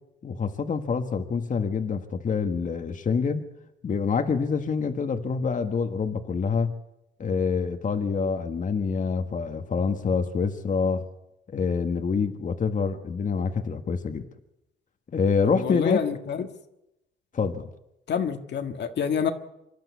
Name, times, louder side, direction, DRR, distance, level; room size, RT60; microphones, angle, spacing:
voice 1, 0.2-3.4 3.8-6.7 7.2-11.0 11.5-14.3 15.1-16.0 17.3-17.7, left 5 dB, 40° left, 7 dB, 1.5 m, -26 dB
voice 2, 15.6-16.5 18.1-19.3, left 7 dB, 60° left, 7 dB, 1.7 m, -27 dB
26.0 x 12.0 x 8.3 m, 0.89 s
cardioid pair, 90°, 20 cm